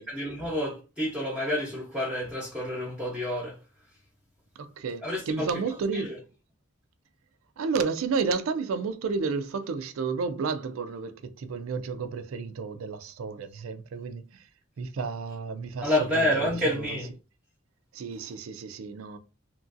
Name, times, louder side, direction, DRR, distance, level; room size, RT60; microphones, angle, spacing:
voice 1, 0.0-3.6 5.0-5.5 5.9-6.2 15.8-17.1, left 1 dB, 5° right, 0.8 m, -29 dB
voice 2, 4.6-6.2 7.6-14.5 14.8-17.0 17.9-19.2, right 4 dB, 85° right, 0.4 m, -32 dB
2.9 x 2.5 x 2.5 m
head